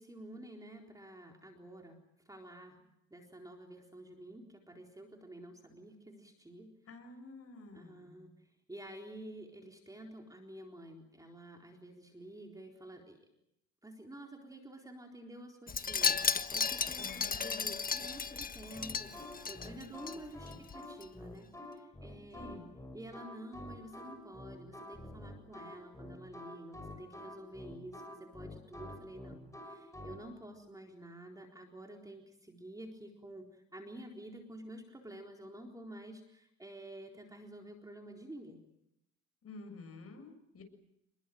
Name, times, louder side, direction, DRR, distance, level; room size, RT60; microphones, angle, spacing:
voice 1, 0.0-2.0 2.2-6.7 7.7-13.2 13.8-22.6 22.9-38.6, right 1 dB, 10° right, 1 dB, 4.1 m, -50 dB
voice 2, 6.9-8.3 17.0-17.7 20.5-20.6 22.3-22.7 39.4-40.6, left 2 dB, 45° left, 7 dB, 7.1 m, -51 dB
Wind chime, 15.7-20.2 20.5-20.7 21.0-21.1, left 5 dB, 25° left, 1.3 m, -34 dB
sound 1, 18.8-30.2, left 1 dB, 10° left, 6.2 m, -48 dB
29.0 x 21.5 x 7.9 m, 0.81 s
cardioid pair, 100°, 32 cm